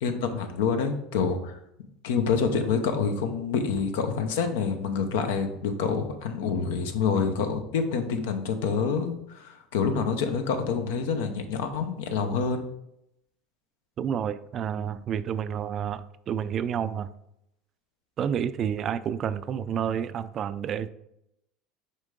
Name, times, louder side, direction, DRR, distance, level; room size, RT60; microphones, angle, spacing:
voice 1, 0.0-1.6 2.0-12.6, left 5 dB, 90° left, 7 dB, 0.8 m, -27 dB
voice 2, 14.0-17.1 18.2-20.9, right 8 dB, 40° right, 14 dB, 0.3 m, -29 dB
6.4 x 4.5 x 3.7 m, 0.81 s
supercardioid pair, 120°, 0 cm